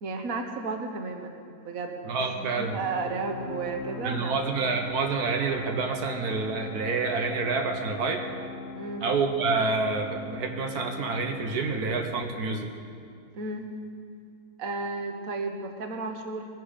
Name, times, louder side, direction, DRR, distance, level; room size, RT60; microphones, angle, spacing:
voice 1, 0.0-4.4 8.8-9.0 13.3-13.7 14.6-16.5, right 3 dB, 70° right, 4 dB, 1.6 m, -33 dB
voice 2, 2.0-2.8 4.0-8.2 9.0-12.7, right 4 dB, 90° right, 4 dB, 1.6 m, -28 dB
sound 1, 2.2-13.6, left 4 dB, 55° left, 0.8 m, -41 dB
21.0 x 11.0 x 5.1 m, 2.3 s
omnidirectional pair, 1.6 m